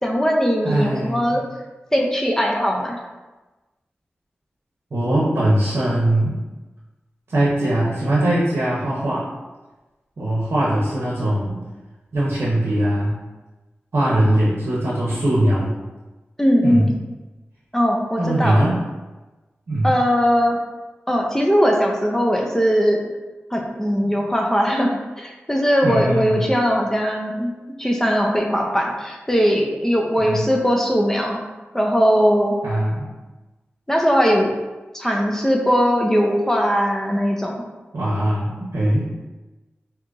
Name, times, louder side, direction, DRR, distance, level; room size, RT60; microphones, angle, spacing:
voice 1, 0.0-1.4 1.9-3.0 16.4-16.9 17.7-18.7 19.8-20.6 21.1-23.0 23.5-27.5 27.8-31.4 31.7-32.6 33.9-34.5 34.9-37.6, equal, 10° left, 0 dB, 0.5 m, -19 dB
voice 2, 0.6-1.4 4.9-6.3 7.3-9.3 10.2-11.6 12.1-13.1 13.9-15.8 16.6-16.9 18.2-18.8 19.7-20.0 24.0-24.2 25.8-26.4 30.2-30.4 32.6-33.1 37.9-39.1, right 1 dB, 80° right, -6 dB, 0.7 m, -21 dB
2.8 x 2.4 x 3.8 m, 1.2 s
wide cardioid pair, 65°, 4 cm